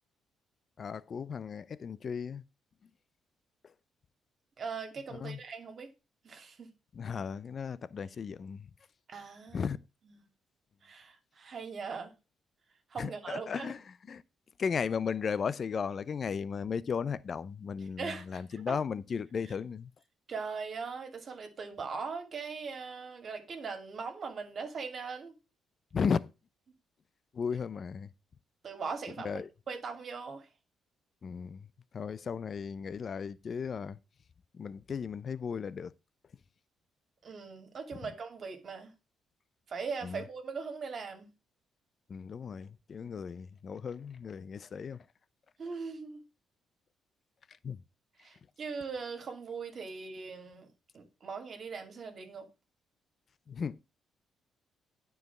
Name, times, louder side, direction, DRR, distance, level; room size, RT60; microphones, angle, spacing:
voice 1, 0.8-2.4 3.6-3.7 5.1-5.4 6.9-8.7 9.5-9.8 13.0-14.2 14.6-19.9 25.9-26.3 27.3-28.1 29.2-29.5 31.2-31.7 31.9-34.0 34.5-35.9 38.0-38.1 40.0-40.2 42.1-45.1 47.5-47.8 53.5-53.8, left 6 dB, 45° left, 0.5 m, -35 dB
voice 2, 4.6-5.9 6.2-6.7 9.1-9.7 10.8-12.1 12.9-13.7 18.0-18.4 18.7-18.8 20.3-25.3 28.6-30.5 37.2-38.9 39.7-41.3 45.6-46.2 48.2-52.5, right 5 dB, 50° right, 2.5 m, -40 dB
9.5 x 4.8 x 6.0 m
cardioid pair, 90°, 0 cm